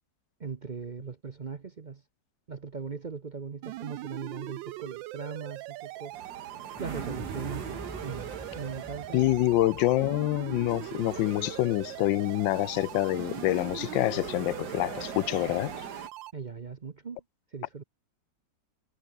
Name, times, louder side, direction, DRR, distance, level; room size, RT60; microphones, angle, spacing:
voice 1, 0.4-2.0 2.5-6.2 6.8-9.4 16.3-17.2 17.5-17.8, right 5 dB, 45° right, 0.6 m, -39 dB
sound 1, 3.6-16.3, right 17 dB, 85° right, 1.3 m, -41 dB
sound 2, 6.1-16.1, right 5 dB, 60° right, 3.3 m, -44 dB
Explosion, 6.7-12.8 13.1-13.2, equal, 5° right, 4.7 m, -48 dB
voice 2, 9.1-15.7, left 16 dB, 90° left, 1.3 m, -26 dB
omnidirectional pair, 2.0 m